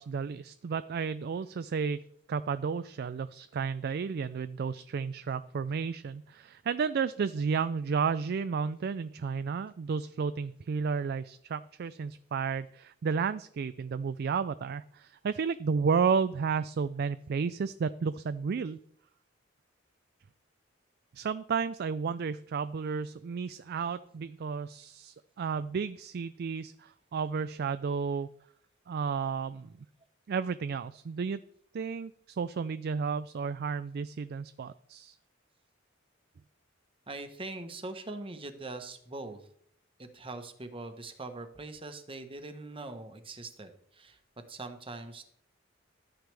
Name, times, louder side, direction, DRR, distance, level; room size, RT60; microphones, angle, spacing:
voice 1, 0.0-2.0 2.3-18.8 21.1-28.3 28.9-29.7 30.3-31.4 31.7-35.2, right 5 dB, 55° right, 13 dB, 0.4 m, -32 dB
voice 2, 37.1-39.5 40.0-44.2 44.5-45.2, right 2 dB, 25° right, 7 dB, 1.1 m, -42 dB
13.0 x 9.3 x 3.4 m, 0.66 s
head